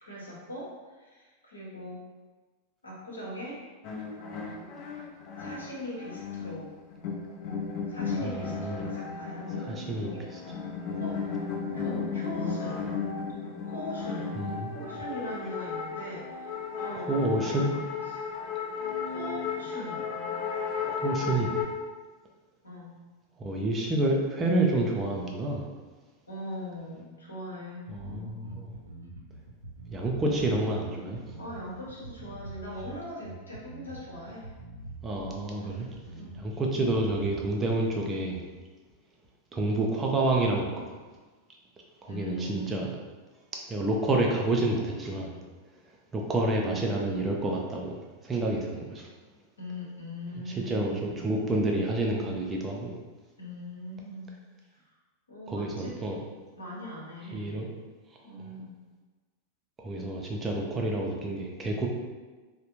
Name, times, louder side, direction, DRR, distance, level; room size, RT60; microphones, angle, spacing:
voice 1, 0.0-2.0 2.8-3.6 5.4-6.7 7.9-10.3 10.9-11.2 11.7-12.9 13.6-14.4 14.6-17.8 18.1-18.3 19.0-20.2 20.7-20.8 22.6-22.9 26.3-28.4 31.4-34.5 35.6-35.9 36.1-36.3 42.1-42.9 46.6-46.9 49.6-51.2 53.4-54.4 54.7-54.8 55.3-56.0 56.6-57.6 58.2-58.7, equal, 75° left, -5 dB, 0.9 m, -41 dB
sound 1, 3.8-21.7, left 5 dB, 45° left, 0.5 m, -34 dB
voice 2, 8.2-8.8 9.6-10.4 14.4-14.7 17.1-17.8 20.9-21.5 23.4-25.7 27.9-28.7 29.9-31.3 35.0-35.9 36.4-38.4 39.5-40.9 42.0-42.9 43.7-45.3 46.1-47.9 48.2-49.1 50.7-52.9 55.5-56.2 57.3-57.8 58.4-58.5 59.8-61.9, right 2 dB, 20° right, -1 dB, 0.5 m, -29 dB
Bass guitar, 28.0-37.5, right 1 dB, 80° right, 0.4 m, -45 dB
3.2 x 2.1 x 2.9 m, 1.3 s
figure-of-eight pair, 90°, 0 cm